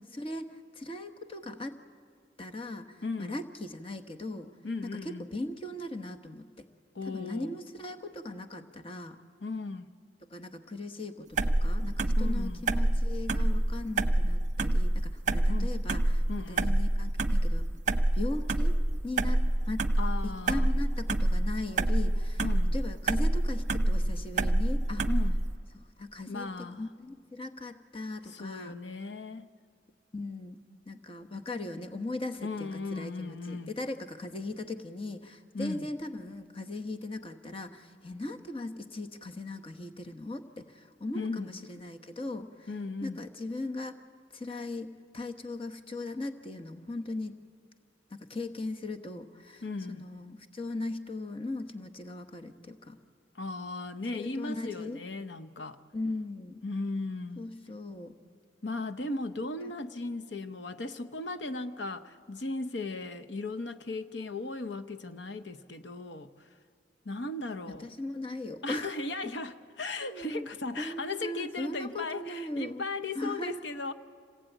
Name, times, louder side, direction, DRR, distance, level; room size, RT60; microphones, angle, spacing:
voice 1, 0.1-1.8 2.4-4.5 4.8-6.7 7.0-9.2 10.3-17.7 18.1-18.8 19.0-19.9 20.2-22.4 22.7-25.0 25.7-28.7 30.1-30.6 30.9-42.7 43.0-44.0 44.3-47.4 48.1-49.6 49.9-53.0 54.2-55.0 55.9-56.6 57.4-58.1 59.6-59.7 67.7-68.9 69.2-69.3 70.0-70.5 70.8-72.8 73.1-73.6, left 2 dB, 30° left, 1.1 m, -39 dB
voice 2, 3.0-3.4 4.6-5.2 6.9-7.5 9.4-9.9 12.2-12.6 15.5-15.7 16.3-16.8 20.0-20.7 22.4-22.7 25.1-25.4 26.3-26.8 28.2-29.5 32.4-33.7 35.5-35.9 41.1-41.5 42.7-43.2 49.6-50.0 53.3-55.8 56.6-57.4 58.6-66.5 67.0-67.9 68.6-73.9, left 3 dB, 75° left, 0.9 m, -37 dB
sound 1, 11.4-25.5, right 1 dB, 40° right, 0.9 m, -27 dB
27.0 x 19.0 x 9.2 m
head